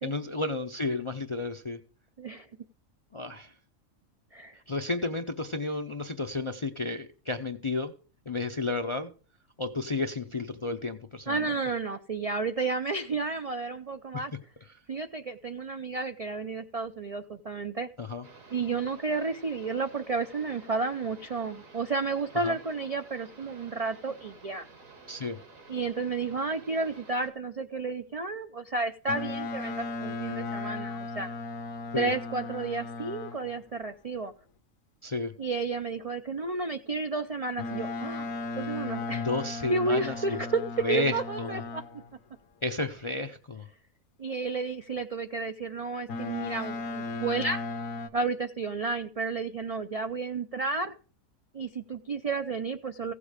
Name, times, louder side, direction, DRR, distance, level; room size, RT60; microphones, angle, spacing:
voice 1, 0.0-1.8 3.1-3.5 4.7-7.9 8.3-9.1 9.6-11.5 18.0-18.2 22.4-22.6 25.1-25.4 31.9-32.1 35.0-35.3 39.1-40.1 40.8-41.6 42.6-43.6, left 3 dB, 40° left, 6 dB, 0.4 m, -32 dB
voice 2, 11.3-14.3 14.9-17.9 18.5-24.7 25.7-31.3 31.9-34.3 35.4-38.3 38.6-39.2 39.7-41.8 44.2-47.6 48.1-50.9 51.5-53.1, right 3 dB, 55° right, 7 dB, 0.4 m, -32 dB
sound 1, 18.2-27.3, right 3 dB, 70° right, 2.3 m, -52 dB
Boat Water vehicle, 29.1-33.6 37.6-42.1 46.1-48.1, left 3 dB, 75° left, 1.3 m, -36 dB
15.5 x 6.9 x 4.9 m, 0.39 s
omnidirectional pair, 1.4 m